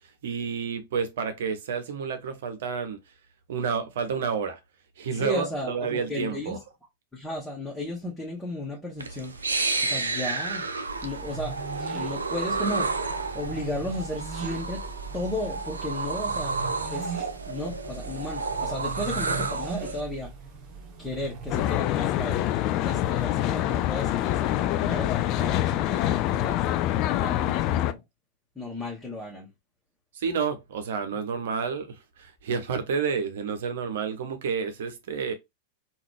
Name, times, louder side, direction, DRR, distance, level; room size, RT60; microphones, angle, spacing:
voice 1, 0.2-3.0 3.5-4.6 5.0-6.6 30.1-35.3, right 6 dB, 65° right, 0.9 m, -30 dB
voice 2, 5.1-6.6 7.1-9.5 9.8-10.6 11.0-11.6 11.9-12.9 13.3-14.8 15.1-16.5 16.9-20.3 21.0-22.4 22.7-28.0 28.5-29.5, left 1 dB, 10° left, 1.4 m, -34 dB
sound 1, 9.0-20.0, right 3 dB, 85° right, 0.5 m, -31 dB
sound 2, 10.9-21.8, right 5 dB, 45° right, 1.2 m, -39 dB
Traffic noise roadway noise, 21.5-27.9, left 13 dB, 45° left, 0.4 m, -25 dB
3.8 x 2.6 x 3.2 m
figure-of-eight pair, 95°, 0 cm